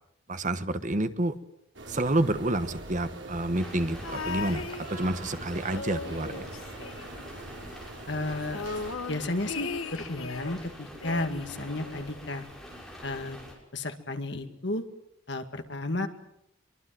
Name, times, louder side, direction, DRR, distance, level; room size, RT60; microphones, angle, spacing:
voice 1, 0.3-1.3 1.9-6.3, right 1 dB, 40° right, 11 dB, 1.2 m, -29 dB
sound 1, 1.7-9.0, right 2 dB, 60° right, 4.7 m, -43 dB
sound 2, 3.5-13.5, equal, ahead, 6.4 m, -45 dB
sound 3, 4.0-5.3 5.6-7.5 7.8-7.9 8.2-10.6 11.0-12.3 13.1-13.2, left 4 dB, 90° left, 1.2 m, -38 dB
voice 2, 8.1-8.6 9.1-12.4 13.0-13.4 13.7-14.8 15.3-16.1, left 2 dB, 60° left, 7 dB, 2.3 m, -33 dB
24.0 x 23.5 x 7.7 m, 0.79 s
head